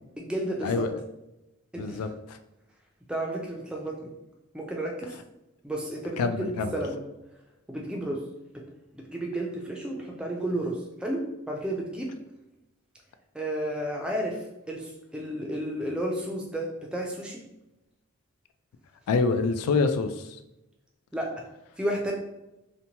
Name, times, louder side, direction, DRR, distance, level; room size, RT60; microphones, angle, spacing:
voice 1, 0.2-0.9 1.7-2.0 3.1-4.1 4.5-5.1 5.6-7.0 7.7-8.2 8.5-8.6 8.9-12.1 13.3-14.4 14.7-17.4 21.1-21.3 21.8-22.1, right 1 dB, 5° right, -1 dB, 0.3 m, -32 dB
voice 2, 1.8-2.4 6.2-6.7 19.1-20.4, left 4 dB, 85° left, 11 dB, 0.3 m, -26 dB
2.9 x 2.1 x 2.7 m, 0.93 s
head